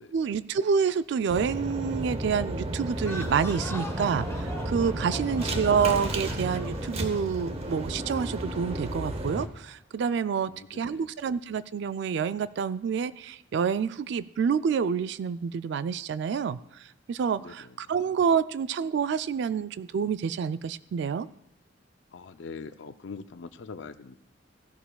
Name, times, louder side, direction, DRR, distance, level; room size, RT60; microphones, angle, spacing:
voice 1, 0.1-16.6 17.1-21.3, right 6 dB, 65° right, 15 dB, 0.3 m, -28 dB
sound 1, 1.3-9.5, right 1 dB, 35° right, 0.8 m, -33 dB
sound 2, 2.9-8.4, left 1 dB, 15° left, 0.9 m, -42 dB
sound 3, 3.9-10.4, equal, 15° right, 1.7 m, -51 dB
voice 2, 10.5-11.1 17.4-17.5 22.1-24.2, left 4 dB, 75° left, 11 dB, 0.5 m, -43 dB
16.0 x 11.0 x 2.3 m, 0.85 s
head